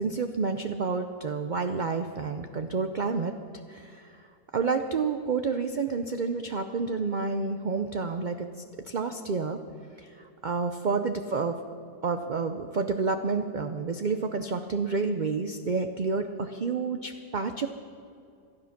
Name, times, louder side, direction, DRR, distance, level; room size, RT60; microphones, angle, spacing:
voice 1, 0.0-3.4 3.7-4.2 4.5-8.5 8.9-9.6 10.0-11.6 12.0-17.7, right 4 dB, 70° right, 7 dB, 0.4 m, -29 dB
18.5 x 13.0 x 5.9 m, 2.5 s
omnidirectional pair, 1.7 m